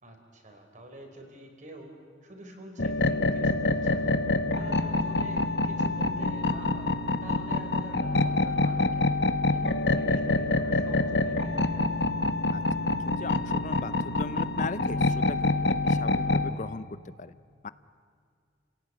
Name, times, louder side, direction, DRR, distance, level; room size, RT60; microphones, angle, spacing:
voice 1, 0.0-2.0 2.2-4.2 4.5-9.1 9.5-11.9, right 1 dB, 45° right, 3 dB, 4.4 m, -46 dB
sound 1, 2.8-16.5, left 2 dB, 70° left, 1.3 m, -26 dB
voice 2, 12.9-16.9 17.2-17.4 17.6-17.7, left 4 dB, 45° left, 15 dB, 0.6 m, -38 dB
30.0 x 17.0 x 9.8 m, 2.2 s
head